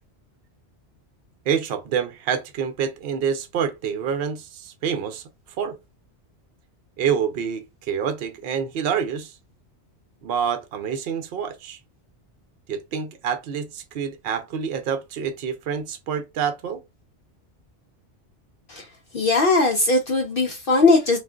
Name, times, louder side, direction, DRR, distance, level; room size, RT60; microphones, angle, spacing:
voice 1, 1.5-5.2 5.6-5.7 7.0-9.3 10.2-11.8 12.7-16.8, right 7 dB, 65° right, 0.8 m, -27 dB
voice 2, 19.1-21.2, left 3 dB, 60° left, 0.7 m, -19 dB
3.6 x 2.5 x 2.2 m
omnidirectional pair, 1.2 m